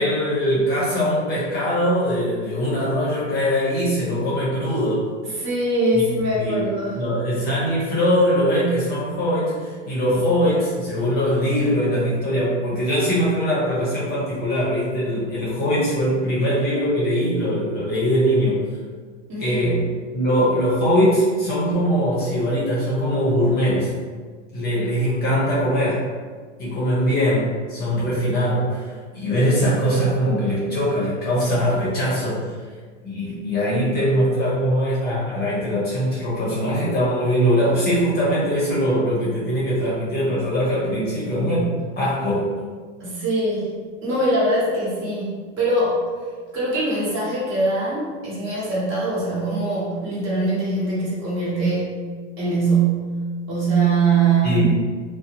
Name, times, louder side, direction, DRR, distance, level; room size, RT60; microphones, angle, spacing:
voice 1, 0.0-5.1 5.9-6.0 6.3-6.6 6.9-18.6 19.4-19.8 20.1-23.9 24.5-26.0 26.6-32.4 33.0-41.7 42.0-42.5 54.4-54.6, equal, 25° left, -7 dB, 0.8 m, -21 dB
voice 2, 5.2-7.0 19.3-19.6 43.0-43.8 44.0-46.0 46.5-52.0 52.4-53.1 53.5-54.6, right 2 dB, 35° right, -7 dB, 1.1 m, -22 dB
2.6 x 2.0 x 2.9 m, 1.5 s
hypercardioid pair, 115°, 37 cm